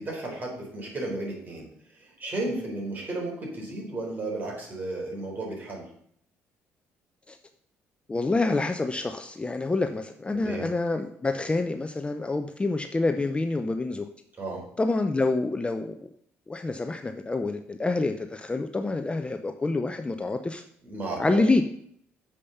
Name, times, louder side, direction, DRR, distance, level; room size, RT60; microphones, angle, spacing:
voice 1, 0.0-1.7 2.0-5.9 10.3-10.7 14.4-14.6 20.8-21.6, right 2 dB, 35° right, -1 dB, 4.0 m, -34 dB
voice 2, 8.1-14.1 14.8-16.1 16.5-20.6 21.2-21.6, left 3 dB, 20° left, 7 dB, 0.6 m, -27 dB
7.1 x 5.1 x 6.9 m, 0.67 s
supercardioid pair, 75°, 5 cm